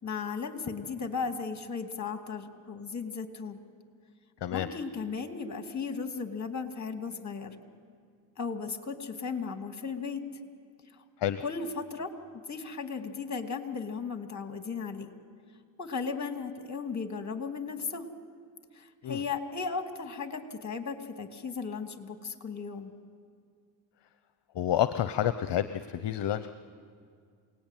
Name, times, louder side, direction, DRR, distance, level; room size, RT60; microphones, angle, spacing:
voice 1, 0.0-3.6 4.5-7.6 8.4-10.2 10.9-11.0 11.4-12.1 12.5-15.1 15.8-18.1 18.7-22.9, left 5 dB, 35° left, 7 dB, 2.5 m, -36 dB
voice 2, 24.5-26.6, left 11 dB, 55° left, 12 dB, 0.9 m, -29 dB
28.0 x 19.0 x 9.2 m, 2.2 s
cardioid pair, 70°, 50 cm